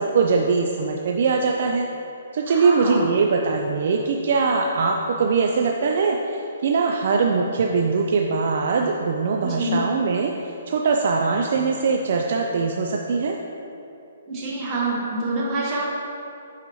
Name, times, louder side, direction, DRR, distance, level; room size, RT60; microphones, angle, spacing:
voice 1, 0.0-1.9 2.3-13.3, right 4 dB, 60° right, 1 dB, 0.4 m, -22 dB
voice 2, 2.5-3.0 9.4-9.8 14.3-15.9, right 2 dB, 25° right, -5 dB, 1.5 m, -26 dB
9.5 x 4.1 x 3.1 m, 2.8 s
hypercardioid pair, 150°, 0 cm